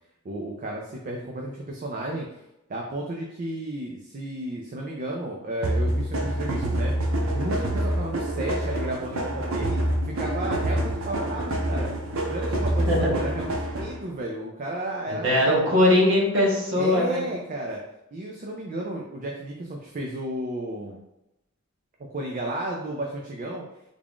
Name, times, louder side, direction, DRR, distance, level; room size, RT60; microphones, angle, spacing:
voice 1, 0.2-2.3 2.7-9.8 10.2-11.9 12.2-15.7 16.8-17.8 18.1-21.0 22.1-23.6, right 1 dB, 40° right, -1 dB, 0.4 m, -33 dB
sound 1, 5.6-14.1, right 1 dB, 90° right, 0.6 m, -27 dB
voice 2, 15.1-17.2, left 1 dB, 65° right, -3 dB, 1.0 m, -21 dB
3.5 x 2.4 x 3.5 m, 0.88 s
head